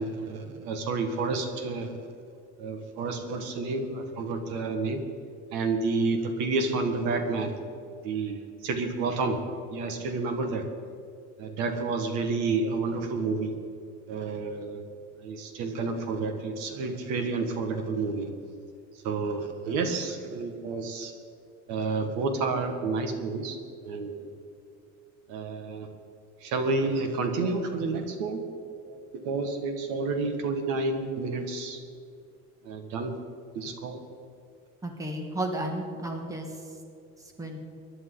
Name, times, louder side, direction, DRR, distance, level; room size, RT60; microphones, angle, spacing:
voice 1, 0.0-1.9 2.6-5.0 5.5-7.6 8.0-9.4 9.7-10.6 11.4-13.6 14.1-14.8 15.2-18.3 19.0-21.1 21.7-23.6 23.8-24.3 25.3-25.9 26.4-28.4 28.7-31.8 32.6-33.1 33.5-34.0, right 3 dB, 75° right, 6 dB, 1.8 m, -30 dB
voice 2, 34.8-36.8 37.2-37.6, right 1 dB, 10° right, 3 dB, 1.5 m, -33 dB
22.5 x 11.0 x 4.0 m, 2.4 s
cardioid pair, 170°, 30 cm